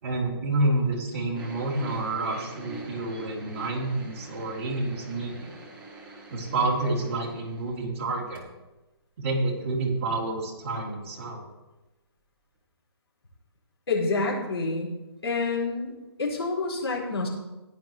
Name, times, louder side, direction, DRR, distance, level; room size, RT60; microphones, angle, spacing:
voice 1, 0.0-5.6 6.3-8.4 9.2-11.4, right 2 dB, 30° right, -4 dB, 2.9 m, -29 dB
sound 1, 1.3-8.1 8.3-8.5 9.2-9.3, right 3 dB, 5° right, 0.9 m, -45 dB
voice 2, 13.9-14.9 15.2-15.9 16.2-17.3, left 3 dB, 70° left, -6 dB, 4.7 m, -27 dB
15.5 x 10.5 x 3.1 m, 1.0 s
hypercardioid pair, 170°, 14 cm